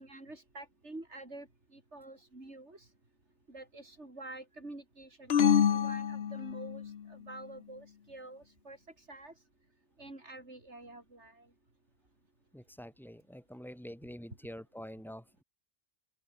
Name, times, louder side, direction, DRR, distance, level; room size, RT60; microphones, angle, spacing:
voice 1, 0.0-2.9 3.5-9.3 10.0-11.5, right 2 dB, 85° right, 5.6 m, -48 dB
sound 1, 5.3-7.0, left 8 dB, 65° left, 1.1 m, -27 dB
voice 2, 12.5-15.4, equal, ahead, 7.8 m, -46 dB
open air
omnidirectional pair, 1.1 m